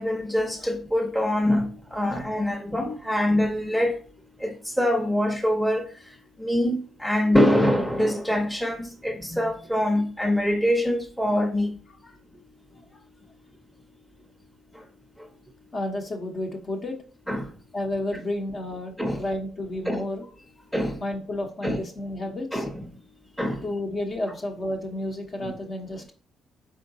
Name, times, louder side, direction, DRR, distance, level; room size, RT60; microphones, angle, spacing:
voice 1, 0.0-4.0 4.4-5.8 6.4-11.7 17.3-17.5 19.0-19.2 19.9-20.0 20.7-21.0 21.6-21.8 22.5-22.8 23.4-23.7 25.4-25.5, left 1 dB, ahead, 0.8 m, -24 dB
voice 2, 15.7-17.0 17.7-20.3 21.0-22.7 23.6-26.1, left 1 dB, 40° left, 1.0 m, -31 dB
4.3 x 3.8 x 2.7 m
cardioid pair, 90°, 0 cm